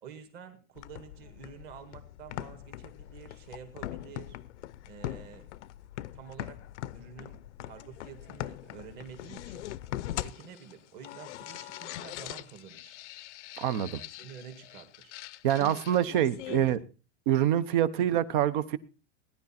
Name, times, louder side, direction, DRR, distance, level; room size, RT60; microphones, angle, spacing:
voice 1, 0.0-4.4 4.8-5.5 6.1-6.6 6.9-9.7 10.2-13.0 14.2-15.2 15.6-16.8 18.0-18.1, right 7 dB, 25° right, 7 dB, 1.9 m, -49 dB
sound 1, 0.7-16.8, left 14 dB, 70° left, 0.7 m, -42 dB
voice 2, 13.6-14.0 15.4-16.8 17.3-18.8, right 11 dB, 45° right, 16 dB, 0.9 m, -26 dB
17.5 x 10.5 x 4.3 m, 0.34 s
supercardioid pair, 180°, 36 cm